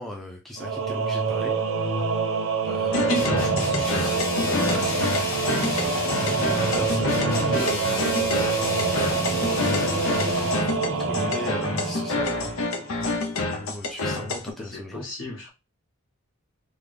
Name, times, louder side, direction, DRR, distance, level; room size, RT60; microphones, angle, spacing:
voice 1, 0.0-1.5 2.6-5.0 5.6-6.0 6.3-8.2 8.9-10.7 11.0-12.5 13.5-15.0, left 1 dB, ahead, 0.4 m, -37 dB
Singing / Musical instrument, 0.6-13.0, right 4 dB, 65° right, 0.8 m, -26 dB
sound 1, 2.9-14.5, left 2 dB, 90° left, 0.7 m, -28 dB
sound 2, 3.1-10.7, left 1 dB, 45° left, 1.5 m, -31 dB
voice 2, 14.6-15.5, left 3 dB, 65° left, 1.6 m, -37 dB
3.5 x 2.2 x 3.3 m
head